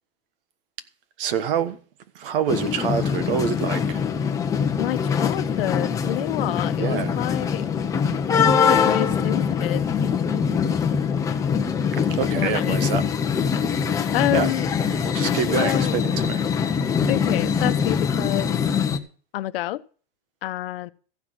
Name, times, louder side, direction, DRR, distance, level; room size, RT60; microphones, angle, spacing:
voice 1, 1.2-1.8 2.1-4.0 6.8-7.2 11.9-13.1 14.3-14.5 15.1-16.4, right 7 dB, 65° right, 1.5 m, -26 dB
sound 1, 2.5-19.0, left 6 dB, 10° left, 0.9 m, -23 dB
voice 2, 4.8-7.7 8.4-9.8 12.3-12.9 14.1-14.7 15.5-16.0 17.1-18.6 19.3-19.8 20.4-20.9, left 16 dB, 65° left, 0.9 m, -28 dB
14.5 x 5.9 x 7.9 m
supercardioid pair, 170°, 30 cm